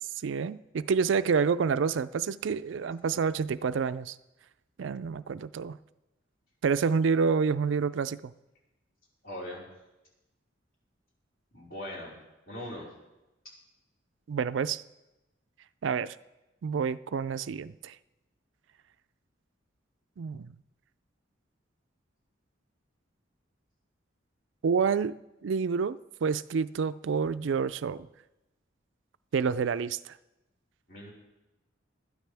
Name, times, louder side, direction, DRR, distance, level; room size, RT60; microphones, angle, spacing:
voice 1, 0.2-4.2 4.8-5.8 6.6-8.3 14.3-14.8 15.8-16.1 16.6-17.9 20.2-20.5 24.6-25.2 25.4-28.1 29.3-30.1, right 5 dB, 70° right, 14 dB, 0.4 m, -28 dB
voice 2, 9.2-9.7 11.5-12.2 12.5-12.9 30.9-31.1, left 1 dB, 50° left, -5 dB, 4.6 m, -40 dB
20.5 x 12.5 x 3.4 m, 0.99 s
head